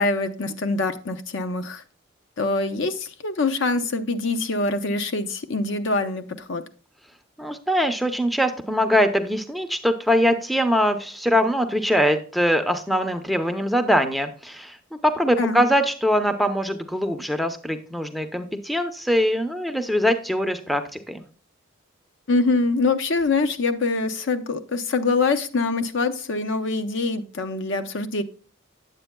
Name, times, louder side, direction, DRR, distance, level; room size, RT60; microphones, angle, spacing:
voice 1, 0.0-1.8 2.4-6.6 15.4-15.6 22.3-28.2, left 3 dB, 60° left, 0.7 m, -24 dB
voice 2, 7.4-14.8 15.0-21.2, equal, ahead, 0.6 m, -22 dB
9.1 x 7.8 x 2.2 m
head